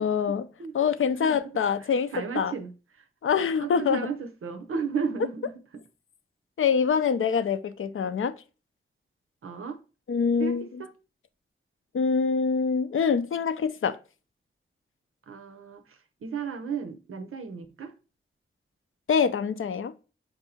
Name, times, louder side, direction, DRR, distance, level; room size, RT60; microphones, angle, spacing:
voice 1, 0.0-0.5 0.7-2.5 3.2-4.1 6.6-8.3 10.1-10.7 11.9-14.0 19.1-19.9, left 6 dB, 75° left, 0.5 m, -25 dB
voice 2, 1.2-1.6 2.1-2.7 3.6-5.5 9.4-9.8 10.4-10.5 10.8-10.9 15.3-17.9, right 5 dB, 90° right, 0.6 m, -34 dB
4.6 x 2.6 x 4.1 m
cardioid pair, 45°, 21 cm